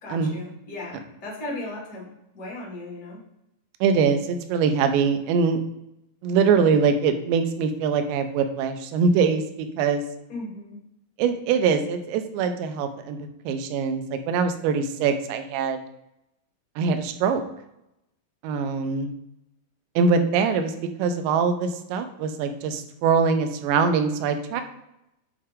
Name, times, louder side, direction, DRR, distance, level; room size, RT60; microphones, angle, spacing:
voice 1, 0.0-2.1 2.3-3.2 10.3-10.8, left 2 dB, 30° left, -4 dB, 1.7 m, -36 dB
voice 2, 3.8-5.6 6.2-10.0 11.2-15.8 16.8-17.4 18.4-19.1 20.0-20.7 21.0-24.6, right 5 dB, 80° right, 7 dB, 2.9 m, -23 dB
8.5 x 4.3 x 3.7 m, 0.85 s
omnidirectional pair, 5.2 m